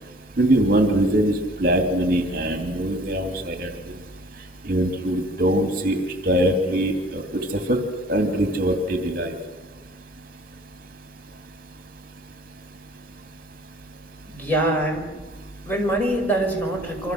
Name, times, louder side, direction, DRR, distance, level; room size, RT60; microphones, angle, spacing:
voice 1, 0.4-3.7 4.7-7.2 7.7-7.8 8.1-9.3, right 1 dB, 50° right, 4 dB, 2.5 m, -22 dB
voice 2, 14.3-15.1 15.6-17.1, right 1 dB, 10° left, 2 dB, 5.7 m, -24 dB
28.5 x 25.0 x 6.5 m, 1.2 s
head